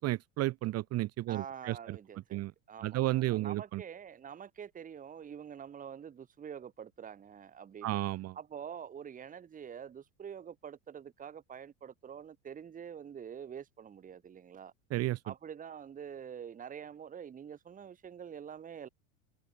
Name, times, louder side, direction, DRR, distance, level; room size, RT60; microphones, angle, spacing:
voice 1, 0.0-2.0 2.3-2.5 2.8-3.8 7.8-8.4 14.9-15.2, right 17 dB, 40° right, 0.9 m, -32 dB
voice 2, 1.3-2.4 2.7-8.0 8.3-14.7 15.2-18.9, right 8 dB, 20° right, 1.2 m, -46 dB
supercardioid pair, 110°, 40 cm